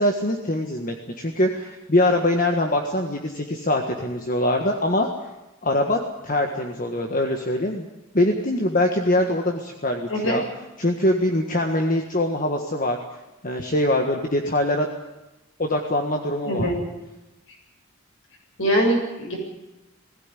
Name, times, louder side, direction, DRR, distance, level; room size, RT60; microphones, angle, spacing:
voice 1, 0.0-5.1 5.6-7.9 8.1-10.4 10.8-13.0 13.4-14.9 15.6-16.7, left 1 dB, 40° left, 2 dB, 1.6 m, -23 dB
voice 2, 18.6-19.4, equal, 65° left, 1 dB, 7.4 m, -22 dB
19.5 x 17.0 x 9.9 m, 1.0 s
head